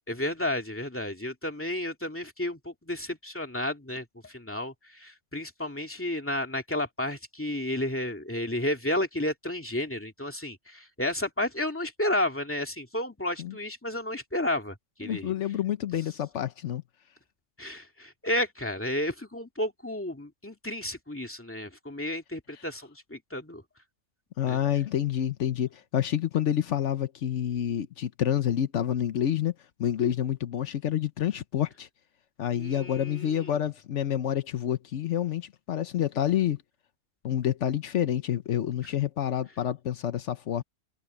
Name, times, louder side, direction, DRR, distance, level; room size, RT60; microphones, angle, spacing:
voice 1, 0.1-15.3 15.9-16.0 17.6-23.6 24.5-24.6 32.6-33.6, left 1 dB, 10° left, 2.3 m, -32 dB
voice 2, 15.0-16.8 24.4-29.5 29.8-31.9 32.4-36.6 37.2-40.6, left 10 dB, 80° left, 1.1 m, -28 dB
omnidirectional pair, 1.2 m